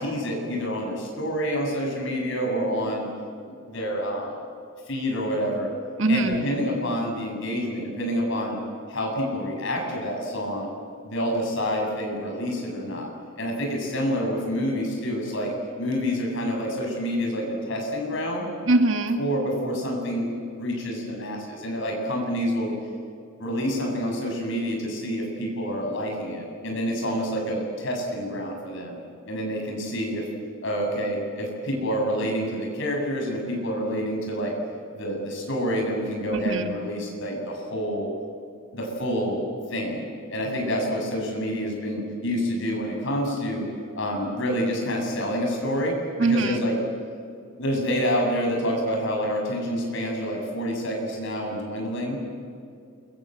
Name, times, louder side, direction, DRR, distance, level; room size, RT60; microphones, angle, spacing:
voice 1, 0.0-3.1 3.5-4.4 4.9-5.7 6.1-8.6 8.9-10.7 11.0-13.1 13.4-15.5 15.8-18.5 19.2-22.7 23.4-29.0 29.2-30.3 30.6-34.5 34.9-38.1 38.7-39.4 39.7-40.0 40.3-43.7 43.9-46.7 47.6-52.2, equal, 60° left, 1 dB, 8.0 m, -28 dB
voice 2, 6.0-6.5 18.6-19.2 36.3-36.7 46.2-46.7, right 2 dB, 65° right, 6 dB, 1.9 m, -22 dB
28.5 x 23.5 x 7.9 m, 2.4 s
head